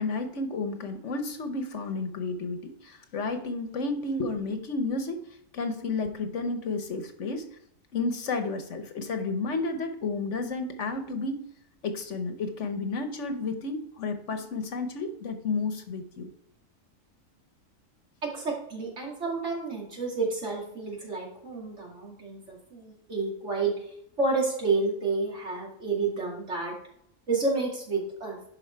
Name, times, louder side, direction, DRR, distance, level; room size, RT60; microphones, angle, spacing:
voice 1, 0.0-5.2 5.5-7.5 7.9-11.4 11.8-16.3, left 3 dB, 65° left, 7 dB, 1.2 m, -31 dB
voice 2, 18.2-26.7 27.3-28.4, right 3 dB, 60° right, -3 dB, 2.9 m, -30 dB
11.0 x 4.7 x 4.5 m, 0.72 s
omnidirectional pair, 1.4 m